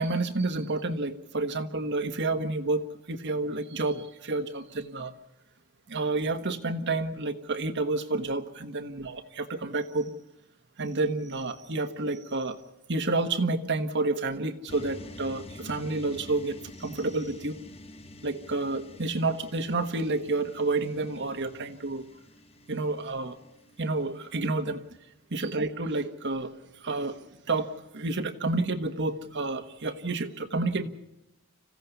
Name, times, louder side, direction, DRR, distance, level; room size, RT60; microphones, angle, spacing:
voice 1, 0.0-5.1 5.9-10.1 10.8-12.6 12.9-17.5 18.2-22.1 22.7-23.4 23.8-24.8 25.3-30.9, right 2 dB, 55° right, 8 dB, 1.3 m, -30 dB
sound 1, 14.7-24.7, left 1 dB, 25° left, 1.0 m, -48 dB
26.5 x 16.0 x 6.9 m, 0.90 s
head